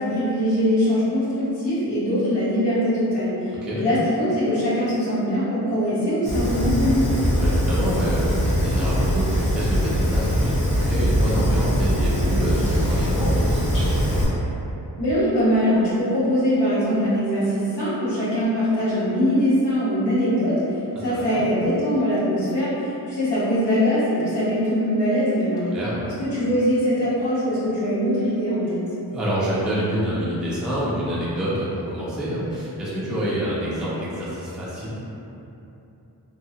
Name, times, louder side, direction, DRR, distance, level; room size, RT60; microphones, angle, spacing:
voice 1, 0.0-7.2 15.0-20.6 21.0-25.7 26.0-28.8, equal, 85° left, -11 dB, 1.1 m, -22 dB
Fire, 6.2-14.2, equal, 50° left, 1.0 m, -22 dB
voice 2, 7.4-14.3 21.1-21.5 25.7-26.1 29.1-35.0, equal, ahead, -9 dB, 0.4 m, -27 dB
2.8 x 2.4 x 2.7 m, 2.9 s
wide cardioid pair, 165°, 40 cm